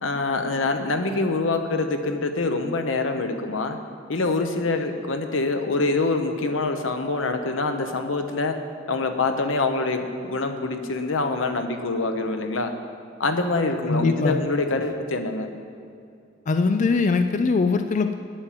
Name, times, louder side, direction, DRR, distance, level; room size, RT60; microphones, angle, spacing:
voice 1, 0.0-3.8 4.1-8.6 8.9-12.7 13.2-15.5, left 3 dB, 85° left, 6 dB, 0.9 m, -25 dB
voice 2, 13.9-14.4 16.5-18.2, left 4 dB, 40° left, 8 dB, 0.4 m, -21 dB
9.0 x 8.8 x 7.4 m, 2.5 s
head